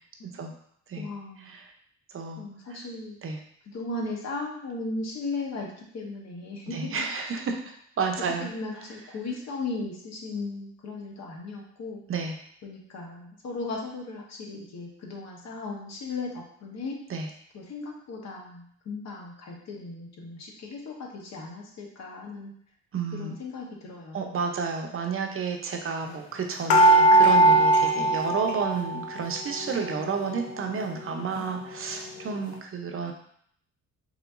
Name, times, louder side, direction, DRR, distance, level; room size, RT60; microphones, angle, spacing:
voice 1, 1.0-1.6 2.4-3.2 3.6-7.0 8.4-12.0 12.6-17.0 17.5-22.6 23.1-24.4, left 3 dB, 60° left, 0 dB, 1.1 m, -37 dB
voice 2, 6.7-8.5 12.1-12.4 17.1-17.3 22.9-23.3 24.1-33.1, right 5 dB, 45° right, 3 dB, 0.7 m, -31 dB
sound 1, 26.7-29.2 29.5-30.5 31.0-31.1 31.4-31.5, right 2 dB, 80° left, 0.7 m, -20 dB
4.8 x 3.0 x 2.5 m, 0.66 s
cardioid pair, 90°, 30 cm